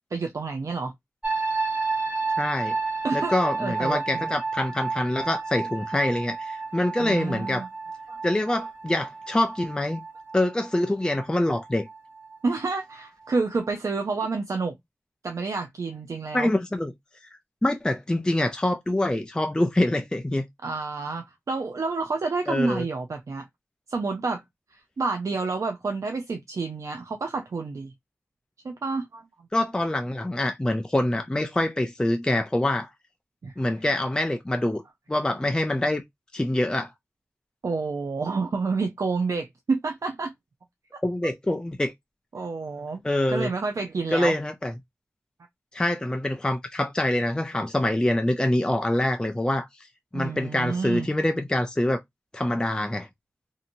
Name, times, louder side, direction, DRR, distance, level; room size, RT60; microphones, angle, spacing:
voice 1, 0.1-0.9 3.0-4.3 7.0-7.7 8.1-8.2 12.4-14.7 15.2-16.5 20.6-23.5 23.9-24.4 24.7-27.9 28.6-29.2 33.4-33.5 37.6-40.3 42.3-43.0 43.3-44.3 50.1-51.1, right 4 dB, 70° right, 0.4 m, -29 dB
sound 1, 1.2-13.0 13.2-13.7, right 4 dB, 20° right, 1.2 m, -31 dB
voice 2, 2.4-2.8 3.1-7.7 8.2-10.0 10.3-11.9 16.3-16.9 17.6-20.4 22.5-22.8 29.5-32.9 33.6-34.8 35.1-36.0 36.3-36.9 41.0-41.9 43.0-43.5 44.1-44.7 45.7-49.9 50.1-52.0 52.3-53.1, left 1 dB, 15° left, 0.4 m, -25 dB
2.7 x 2.6 x 2.5 m
wide cardioid pair, 65°, 6 cm